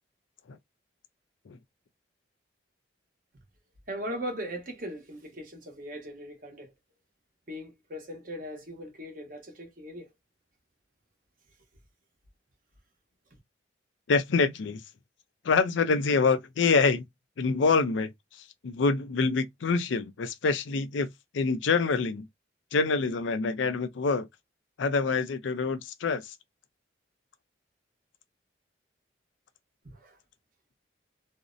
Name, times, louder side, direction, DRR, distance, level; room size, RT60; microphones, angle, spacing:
voice 1, 3.9-6.7 7.5-10.1 29.8-30.2, equal, 45° right, 0.9 m, -39 dB
voice 2, 14.1-14.8 15.4-17.0 17.4-22.3 22.7-24.3 24.8-26.3, left 4 dB, 80° left, 0.4 m, -26 dB
2.6 x 2.0 x 2.4 m
head